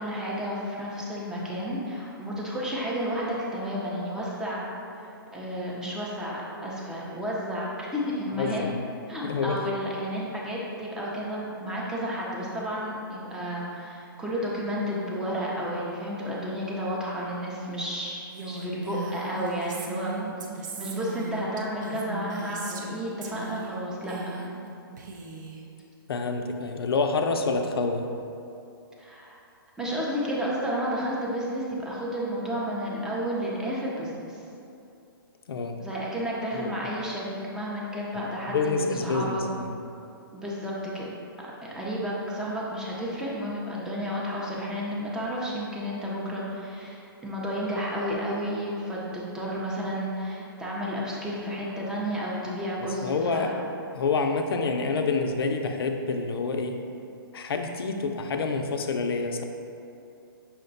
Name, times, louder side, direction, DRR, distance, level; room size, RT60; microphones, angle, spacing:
voice 1, 0.0-4.7 5.0-8.7 9.1-20.2 20.6-24.5 24.8-25.0 29.0-29.4 29.8-34.4 35.8-39.4 40.3-41.1 41.4-53.5, equal, 5° right, -5 dB, 0.6 m, -32 dB
voice 2, 8.4-8.8 9.2-9.6 26.1-28.1 35.5-35.8 36.5-36.7 38.5-39.8 52.8-53.6 53.9-56.8 57.3-59.4, left 4 dB, 80° left, 5 dB, 0.5 m, -27 dB
Female speech woman speaking, 18.3-22.9 23.2-23.8 24.0-24.7 25.0-25.6, right 3 dB, 50° right, 0.6 m, -37 dB
5.8 x 2.2 x 3.9 m, 2.7 s
hypercardioid pair, 145°, 12 cm